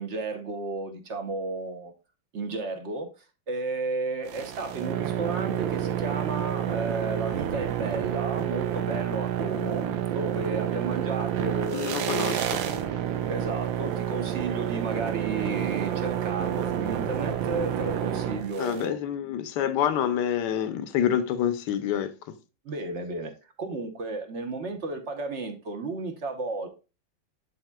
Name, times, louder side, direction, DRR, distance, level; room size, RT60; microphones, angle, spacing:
voice 1, 0.0-1.9 2.3-3.1 3.5-12.3 13.3-19.0 22.6-23.3 23.6-26.7, right 3 dB, 50° right, 1.0 m, -33 dB
sound 1, 4.3-18.8, right 10 dB, 90° right, 1.4 m, -29 dB
voice 2, 11.7-12.4 18.6-22.1, left 9 dB, 70° left, 1.3 m, -27 dB
10.5 x 4.2 x 2.2 m
omnidirectional pair, 2.0 m